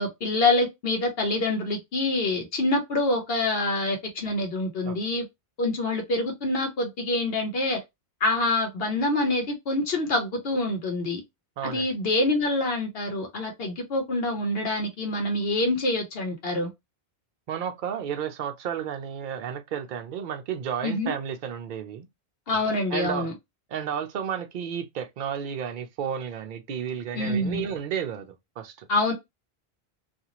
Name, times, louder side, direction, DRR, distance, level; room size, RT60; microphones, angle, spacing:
voice 1, 0.0-5.3 5.6-7.8 8.2-11.2 11.6-16.7 20.8-21.1 22.5-23.3 27.1-27.6 28.9-29.1, left 2 dB, 75° left, 1.0 m, -26 dB
voice 2, 11.6-11.9 17.5-22.1 22.9-23.3 23.7-28.9, right 8 dB, 60° right, 0.7 m, -32 dB
2.6 x 2.4 x 2.9 m
omnidirectional pair, 1.0 m